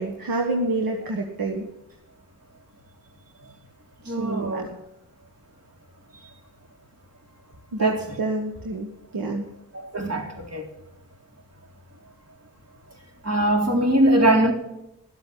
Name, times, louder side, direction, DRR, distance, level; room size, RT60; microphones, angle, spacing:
voice 1, 0.0-1.7 4.0-4.6 7.7-9.5, right 2 dB, 75° right, 1.4 m, -28 dB
voice 2, 4.1-4.8 7.8-8.0 9.7-10.7 13.2-14.5, right 1 dB, 45° right, 3.7 m, -21 dB
13.0 x 8.0 x 8.6 m
cardioid pair, 45°, 35 cm